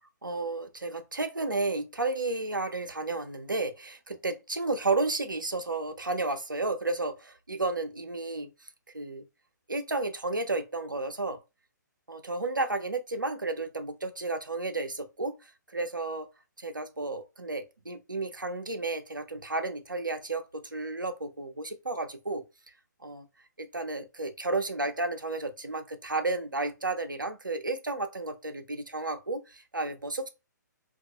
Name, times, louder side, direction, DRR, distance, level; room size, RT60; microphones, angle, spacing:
voice 1, 0.2-8.5 8.9-9.2 9.7-11.4 12.1-15.3 15.7-16.3 16.6-22.4 23.0-23.3 23.6-30.3, right 2 dB, 85° right, 0.5 m, -32 dB
2.3 x 2.2 x 2.8 m
figure-of-eight pair, 130°, 10 cm